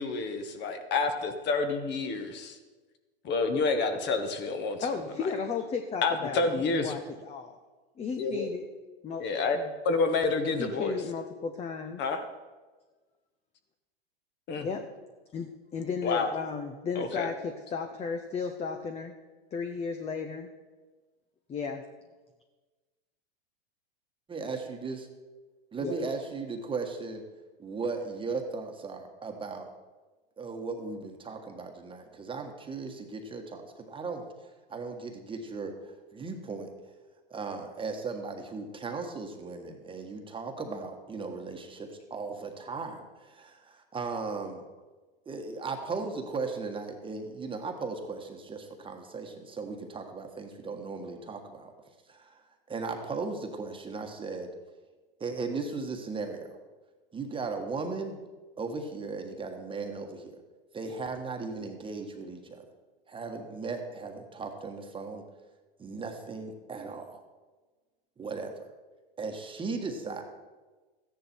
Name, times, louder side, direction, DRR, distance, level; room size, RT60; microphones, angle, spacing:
voice 1, 0.0-2.6 3.2-4.8 6.0-7.0 8.2-8.5 9.2-9.6 9.8-11.0 12.0-12.2 14.5-14.7 16.0-16.3 16.9-17.3, left 4 dB, 35° left, 7 dB, 1.5 m, -28 dB
voice 2, 4.8-7.6 8.0-8.6 9.0-9.2 9.5-9.7 10.6-12.0 14.6-14.8 15.3-19.1 19.5-20.5 21.5-21.8 25.8-25.9, left 5 dB, 20° left, 6 dB, 0.8 m, -34 dB
voice 3, 24.3-25.1 25.7-27.2 27.6-29.7 30.4-36.7 37.3-44.6 45.2-51.7 52.1-54.5 55.2-56.6 57.1-58.2 58.6-60.4 60.7-62.6 63.1-65.2 65.8-67.2 68.2-68.7 69.2-70.2, right 4 dB, 15° right, 4 dB, 1.5 m, -37 dB
14.0 x 10.0 x 4.5 m, 1.3 s
hypercardioid pair, 115°, 30 cm